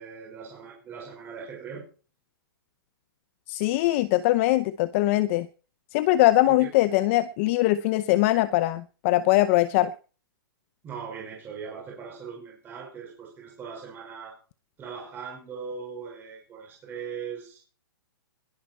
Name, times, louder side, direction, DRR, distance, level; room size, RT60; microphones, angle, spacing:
voice 1, 0.0-1.9 6.5-6.7 10.8-14.4 14.8-17.6, right 6 dB, 15° right, 5.4 m, -39 dB
voice 2, 3.5-5.5 5.9-9.9, left 16 dB, 35° left, 0.7 m, -22 dB
21.0 x 11.0 x 4.5 m
hypercardioid pair, 155°, 12 cm